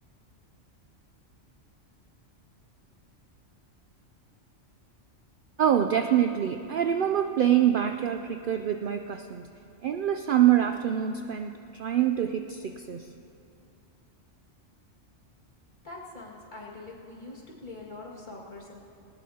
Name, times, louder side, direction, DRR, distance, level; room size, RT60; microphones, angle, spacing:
voice 1, 5.6-9.4 9.8-13.1, right 10 dB, 60° right, 7 dB, 0.6 m, -25 dB
voice 2, 15.8-18.8, left 2 dB, 40° left, -4 dB, 2.2 m, -43 dB
19.5 x 19.0 x 2.8 m, 2.7 s
omnidirectional pair, 1.3 m